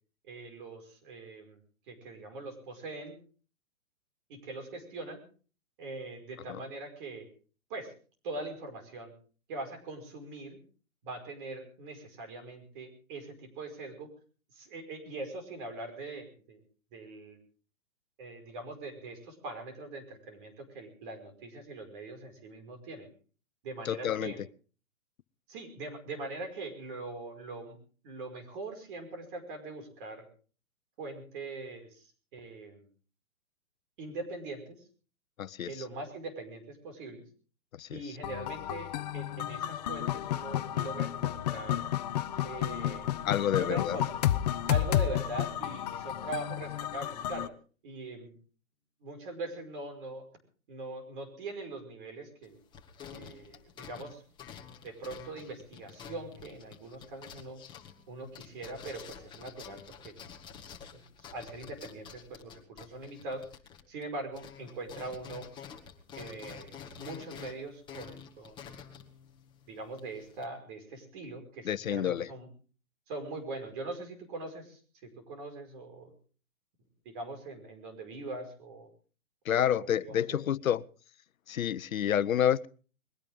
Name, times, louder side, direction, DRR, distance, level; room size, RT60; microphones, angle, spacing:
voice 1, 0.3-1.6 1.9-3.2 4.3-5.2 5.8-7.3 7.7-7.9 8.2-9.1 9.5-10.6 11.0-14.1 14.5-16.6 16.9-17.4 18.2-23.1 23.6-24.4 25.5-27.8 28.0-30.2 31.0-32.9 34.0-34.8 35.6-37.2 37.9-38.9 39.1-41.9 42.4-43.1 43.5-44.1 44.7-47.5 47.8-48.3 49.0-50.2 50.7-52.6 53.1-54.2 54.8-57.6 58.1-59.8 60.0-60.2 60.9-63.4 63.9-65.5 66.2-68.6 69.7-72.5 73.1-76.1 77.1-78.9 79.5-80.4, right 2 dB, 35° right, 5.3 m, -42 dB
voice 2, 23.9-24.3 35.4-35.7 37.8-38.0 43.2-44.0 71.7-72.3 79.5-80.8 81.5-82.7, left 10 dB, 75° left, 1.0 m, -28 dB
sound 1, 38.2-47.5, left 12 dB, 30° left, 0.9 m, -32 dB
sound 2, 52.4-64.1 64.3-70.5, left 7 dB, 10° left, 1.8 m, -49 dB
22.0 x 17.5 x 3.6 m
hypercardioid pair, 155°, 41 cm